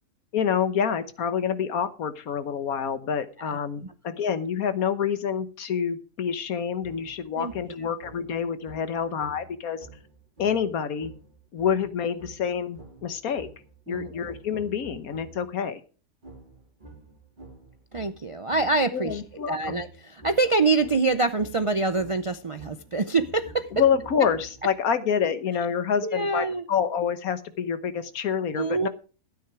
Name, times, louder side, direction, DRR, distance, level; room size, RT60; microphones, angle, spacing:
voice 1, 0.3-9.9 10.4-11.1 11.5-13.5 13.9-15.8 18.9-19.8 23.7-28.9, left 7 dB, 85° left, 11 dB, 1.5 m, -27 dB
sound 1, 6.8-15.6 16.2-24.9, right 2 dB, 35° right, 3.3 m, -49 dB
voice 2, 17.9-19.2 19.5-23.7 26.0-26.6 28.5-28.9, right 3 dB, 50° right, 10 dB, 0.3 m, -25 dB
12.5 x 9.2 x 4.8 m, 0.37 s
omnidirectional pair, 1.5 m